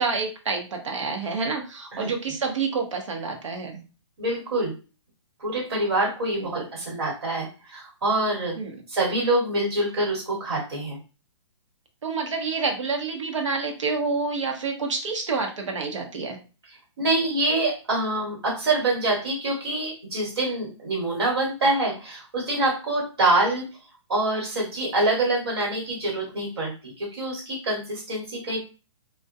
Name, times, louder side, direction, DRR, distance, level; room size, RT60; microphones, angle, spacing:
voice 1, 0.0-3.8 6.3-6.7 8.6-8.8 12.0-16.4, right 4 dB, 75° right, 3 dB, 0.8 m, -28 dB
voice 2, 4.2-4.7 5.4-8.6 8.9-11.0 17.0-23.7 24.1-28.6, right 2 dB, 55° right, -2 dB, 1.3 m, -25 dB
2.3 x 2.1 x 2.6 m, 0.33 s
hypercardioid pair, 180°, 16 cm